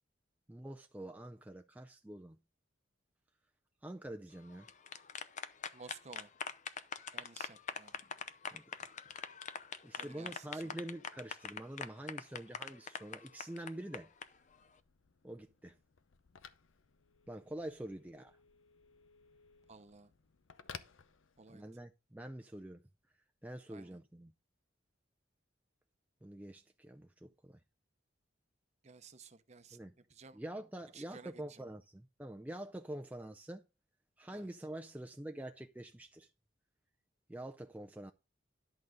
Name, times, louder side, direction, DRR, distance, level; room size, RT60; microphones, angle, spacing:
voice 1, 0.5-2.4 3.8-4.7 8.5-8.9 9.8-14.1 15.2-15.7 17.3-18.4 21.5-22.8 23.4-24.3 26.2-27.6 29.7-29.9 30.3-33.6 34.2-36.3 37.3-38.1, right 1 dB, 10° right, 0.4 m, -46 dB
sound 1, 4.5-14.2, left 6 dB, 40° left, 0.6 m, -43 dB
voice 2, 5.7-6.3 7.1-8.0 10.0-10.8 19.7-20.1 21.4-21.6 23.7-24.0 28.8-29.8 30.1-30.4 30.9-31.6 34.3-34.5, right 4 dB, 35° right, 0.7 m, -55 dB
Telephone, 14.0-21.8, left 6 dB, 85° left, 0.7 m, -57 dB
11.0 x 3.9 x 6.3 m
head